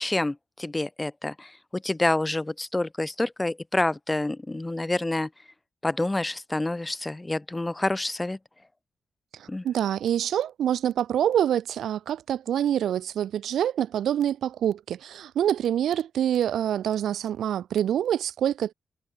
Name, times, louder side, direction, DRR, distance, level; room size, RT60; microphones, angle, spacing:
voice 1, 0.0-5.3 5.8-8.4 9.5-9.6, left 2 dB, 10° left, 0.5 m, -28 dB
voice 2, 9.3-18.7, right 10 dB, 85° right, 3.4 m, -26 dB
wide cardioid pair, 155°, 0 cm